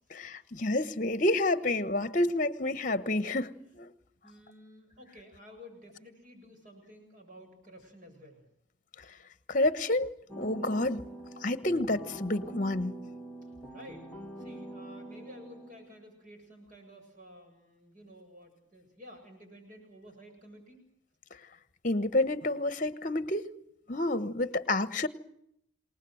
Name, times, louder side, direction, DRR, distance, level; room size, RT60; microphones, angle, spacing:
voice 1, 0.1-3.9 9.5-10.1 10.4-11.0 11.4-13.0 21.8-23.5 23.9-25.1, left 2 dB, 40° left, 1.2 m, -29 dB
voice 2, 4.2-8.5 13.4-14.1 14.4-20.9, equal, 40° right, 7.7 m, -52 dB
sound 1, 10.3-16.0, right 1 dB, 5° left, 1.9 m, -45 dB
29.0 x 20.0 x 7.9 m
head